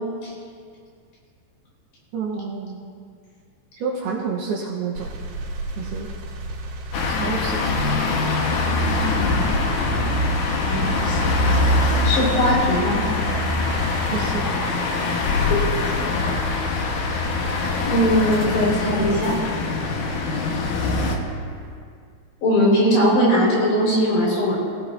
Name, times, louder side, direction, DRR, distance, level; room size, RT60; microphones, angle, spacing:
voice 1, 2.1-2.9 3.8-5.1 5.8-6.1 7.1-8.0 14.1-14.5, right 5 dB, 75° right, -2 dB, 2.4 m, -29 dB
sound 1, 5.0-20.0 20.6-21.8, right 1 dB, 90° right, 4.4 m, -35 dB
sound 2, 6.9-21.2, left 3 dB, 85° left, 1.7 m, -23 dB
voice 2, 10.6-11.6 12.0-13.0 15.4-16.0 17.9-19.4 22.4-24.6, equal, 60° left, -5 dB, 6.4 m, -20 dB
22.0 x 16.5 x 2.6 m, 2.2 s
omnidirectional pair, 5.4 m